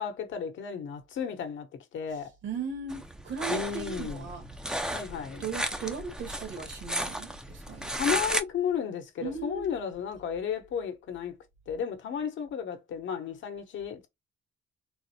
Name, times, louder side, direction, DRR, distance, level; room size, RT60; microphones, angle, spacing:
voice 1, 0.0-1.7 1.9-2.3 3.5-4.3 4.9-5.4 7.9-11.4 11.7-14.1, left 7 dB, 70° left, 1.0 m, -33 dB
voice 2, 2.1-4.8 5.4-8.2 9.2-9.7, right 5 dB, 70° right, 1.8 m, -38 dB
sound 1, 2.9-8.4, equal, 5° right, 0.5 m, -34 dB
3.9 x 2.0 x 2.8 m
cardioid pair, 90°, 20 cm